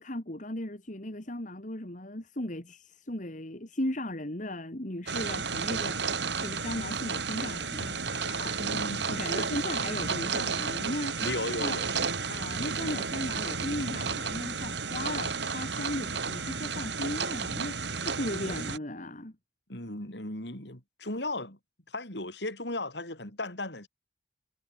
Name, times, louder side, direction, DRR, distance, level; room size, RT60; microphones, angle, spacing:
voice 1, 0.0-8.6 9.1-11.2 11.6-11.8 12.3-19.3, left 1 dB, 45° left, 2.7 m, -37 dB
sound 1, 5.1-18.8, right 5 dB, 75° right, 3.4 m, -32 dB
voice 2, 8.6-9.5 11.2-11.9 18.5-18.6 19.7-21.6 21.9-23.9, left 2 dB, 70° left, 7.2 m, -36 dB
head